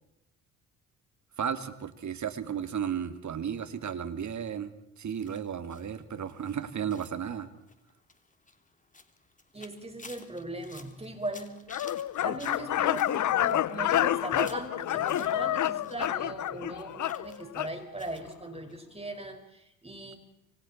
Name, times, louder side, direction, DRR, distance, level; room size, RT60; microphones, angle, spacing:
voice 1, 1.4-7.5, right 8 dB, 45° right, 10 dB, 2.4 m, -34 dB
sound 1, 5.2-16.0 16.3-18.4 18.7-18.8 19.1-19.2, left 3 dB, 20° left, 3.3 m, -53 dB
voice 2, 9.5-11.6 12.2-20.2, right 1 dB, 15° right, 5 dB, 5.3 m, -39 dB
sound 2, 11.7-17.7, left 12 dB, 50° left, 0.9 m, -29 dB
27.0 x 24.5 x 4.4 m, 0.85 s
hypercardioid pair, 60°, 39 cm